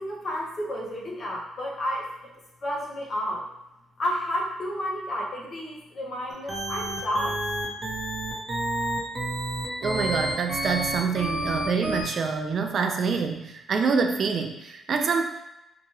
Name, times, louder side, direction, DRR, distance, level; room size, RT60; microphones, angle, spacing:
voice 1, 0.0-2.1 2.6-3.4 4.0-7.4, equal, 45° left, -2 dB, 0.7 m, -31 dB
sound 1, 6.3-12.0, right 1 dB, 35° right, 0.8 m, -29 dB
voice 2, 9.8-15.2, right 5 dB, 55° right, 5 dB, 0.3 m, -26 dB
2.9 x 2.2 x 3.0 m, 0.92 s
cardioid pair, 90°, 0 cm